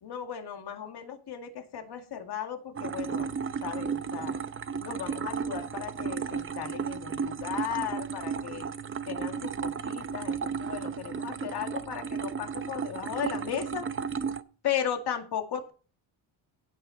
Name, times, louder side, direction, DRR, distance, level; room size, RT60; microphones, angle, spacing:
voice 1, 0.0-3.3 3.6-4.3 4.8-8.7 9.1-13.9 14.6-15.7, left 8 dB, 55° left, 5 dB, 2.2 m, -36 dB
sound 1, 2.8-14.4, right 6 dB, 25° right, 0.7 m, -34 dB
16.5 x 6.0 x 4.1 m, 0.37 s
cardioid pair, 110°, 48 cm